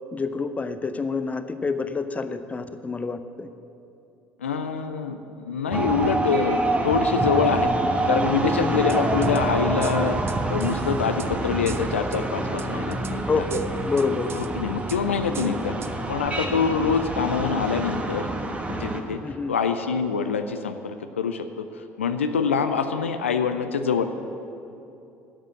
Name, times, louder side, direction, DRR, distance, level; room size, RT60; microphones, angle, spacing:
voice 1, 0.1-3.5 8.4-8.7 13.3-14.3 15.3-15.6 19.2-19.5, left 4 dB, 20° left, 10 dB, 0.7 m, -28 dB
voice 2, 4.4-7.7 8.1-10.2 10.5-13.4 13.9-14.0 14.3-15.7 16.1-18.3 18.8-19.2 19.5-24.0, left 6 dB, 80° left, 8 dB, 0.5 m, -25 dB
sound 1, 5.7-19.0, right 2 dB, 20° right, 1.2 m, -27 dB
sound 2, 8.9-9.4 9.8-11.3 11.7-12.2 12.6-13.2 13.5-14.5 14.9-15.0 15.3-15.9 16.3-16.4, right 8 dB, 35° right, 0.6 m, -41 dB
11.0 x 7.5 x 9.2 m, 2.8 s
figure-of-eight pair, 60°, 7 cm